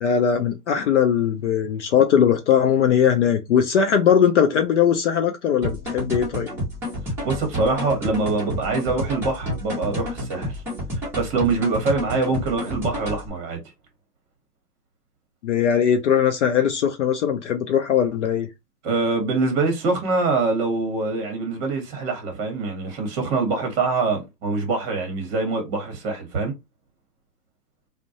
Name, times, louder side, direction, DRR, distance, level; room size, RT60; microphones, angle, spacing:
voice 1, 0.0-6.5 15.4-18.5, left 8 dB, 50° left, 0.5 m, -20 dB
sound 1, 5.6-13.3, left 1 dB, 5° right, 0.7 m, -30 dB
voice 2, 7.0-10.6 11.1-13.6 18.8-26.5, right 3 dB, 25° right, 1.0 m, -24 dB
2.2 x 2.1 x 2.6 m
hypercardioid pair, 135°, 47 cm